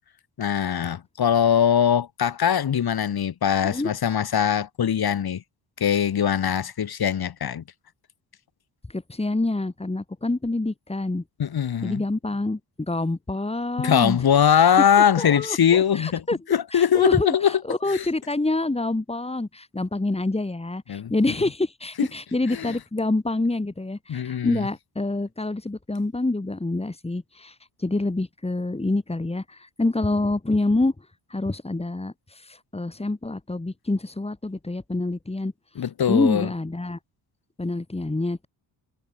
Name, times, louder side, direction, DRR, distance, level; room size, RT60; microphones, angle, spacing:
voice 1, 0.4-5.4 5.8-7.6 11.4-12.0 13.8-17.5 17.9-18.0 20.9-21.1 22.5-22.7 24.1-24.6 35.8-36.5, left 8 dB, 55° left, 4.5 m, -21 dB
voice 2, 8.9-11.2 11.8-14.2 14.6-14.7 15.2-16.4 16.7-30.9 31.3-35.5 36.1-37.0 37.6-38.5, left 2 dB, 15° left, 7.8 m, -27 dB
cardioid pair, 135°, 43 cm